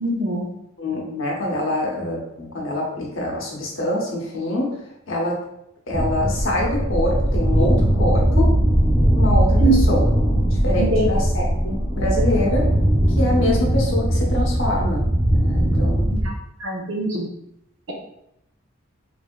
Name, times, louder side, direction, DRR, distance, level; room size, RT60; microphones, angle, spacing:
voice 1, 0.0-0.5 9.6-9.8 10.8-11.0 16.6-17.3, right 3 dB, 65° right, -1 dB, 0.7 m, -22 dB
voice 2, 0.8-4.8 5.1-5.4 5.9-8.5 9.1-10.1 10.5-12.7 13.2-15.0 15.3-16.1, left 1 dB, 70° left, -3 dB, 0.8 m, -25 dB
sound 1, 5.9-16.3, equal, 5° left, 0.8 m, -19 dB
3.2 x 2.6 x 2.2 m, 0.79 s
head